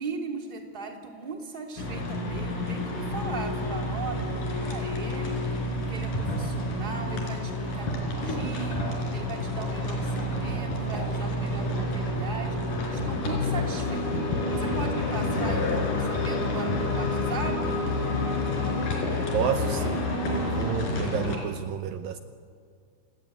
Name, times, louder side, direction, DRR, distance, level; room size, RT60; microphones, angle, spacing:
voice 1, 0.0-8.8 9.1-17.8, right 4 dB, 15° right, 2 dB, 2.5 m, -38 dB
sound 1, 1.8-21.4, left 2 dB, 55° left, 5.7 m, -29 dB
voice 2, 19.3-22.2, right 9 dB, 75° right, 9 dB, 2.4 m, -30 dB
28.0 x 19.0 x 9.3 m, 2.2 s
omnidirectional pair, 4.4 m